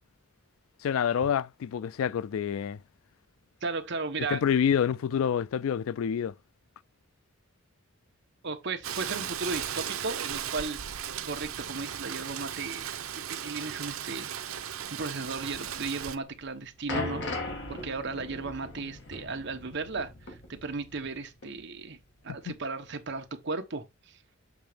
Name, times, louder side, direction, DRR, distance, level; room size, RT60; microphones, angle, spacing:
voice 1, 0.8-2.8 4.3-6.3 22.5-22.6, left 8 dB, 80° left, 0.3 m, -27 dB
voice 2, 3.6-4.4 8.4-10.8 11.2-12.9 13.3-14.3 14.9-17.3 17.7-22.0 22.2-24.2, right 3 dB, 55° right, 1.1 m, -35 dB
Rain, 8.8-16.2, right 9 dB, 90° right, 0.7 m, -36 dB
sound 1, 16.3-21.2 21.4-21.6 22.3-22.4, left 2 dB, 55° left, 1.9 m, -38 dB
7.3 x 3.0 x 5.0 m
head